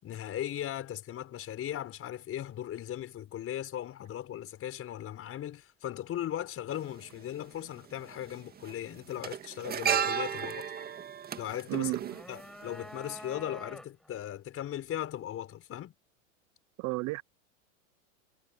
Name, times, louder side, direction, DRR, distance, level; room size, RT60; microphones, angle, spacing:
voice 1, 0.0-10.7 11.4-11.9 12.3-15.9, left 11 dB, 35° left, 5.9 m, -38 dB
sound 1, 6.7-6.8 8.0-8.3 8.6-12.9 13.2-13.3, right 7 dB, 25° right, 2.1 m, -33 dB
voice 2, 11.7-12.2 16.8-17.2, right 22 dB, 45° right, 1.0 m, -32 dB
sound 2, 11.8-14.2, equal, ahead, 7.4 m, -47 dB
hypercardioid pair, 105°, 39 cm